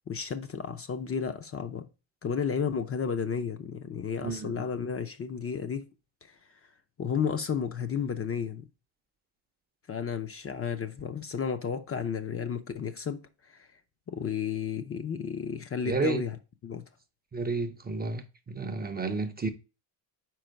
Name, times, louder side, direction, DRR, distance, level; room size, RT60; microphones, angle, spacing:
voice 1, 0.1-1.9 2.2-5.9 6.2-6.4 7.0-8.6 9.9-13.2 13.5-13.7 14.1-16.4 16.6-16.9, left 6 dB, 30° left, 0.5 m, -32 dB
voice 2, 4.2-4.6 15.9-16.2 17.3-19.5, right 3 dB, 20° right, 0.5 m, -31 dB
4.6 x 4.4 x 5.1 m
cardioid pair, 100°, 47 cm